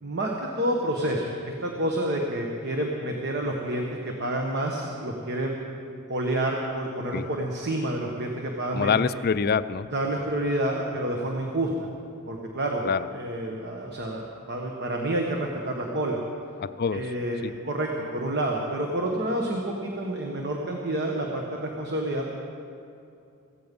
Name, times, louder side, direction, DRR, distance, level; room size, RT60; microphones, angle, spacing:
voice 1, 0.0-5.8 6.1-9.0 9.9-11.9 12.3-12.8 13.1-16.2 16.9-22.3, right 1 dB, 50° right, 1 dB, 1.4 m, -29 dB
voice 2, 8.7-9.9 12.8-13.1 16.6-17.0 17.4-17.5, left 6 dB, 45° left, 14 dB, 0.4 m, -25 dB
16.5 x 15.5 x 5.4 m, 2.5 s
head